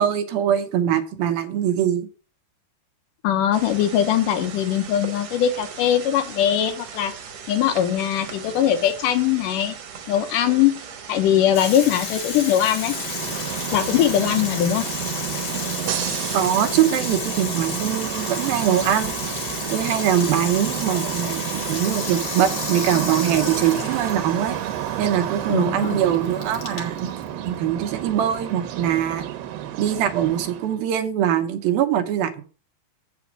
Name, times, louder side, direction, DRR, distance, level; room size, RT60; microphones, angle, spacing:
voice 1, 0.0-2.1 16.3-19.4 19.7-24.6 25.0-27.1 27.5-29.2 29.8-32.4, right 10 dB, 75° right, 8 dB, 2.7 m, -22 dB
voice 2, 3.2-7.1 7.5-9.8 10.1-10.8 11.1-13.0 13.7-14.8 25.5-26.0, left 10 dB, 75° left, 9 dB, 2.0 m, -21 dB
sound 1, 3.5-16.5, right 6 dB, 55° right, 2.2 m, -39 dB
Water tap faucet / Sink (filling or washing), 11.5-29.0, left 4 dB, 45° left, 2.0 m, -32 dB
sound 2, 12.7-30.8, right 12 dB, 90° right, 3.0 m, -31 dB
8.3 x 6.1 x 5.9 m, 0.37 s
omnidirectional pair, 4.5 m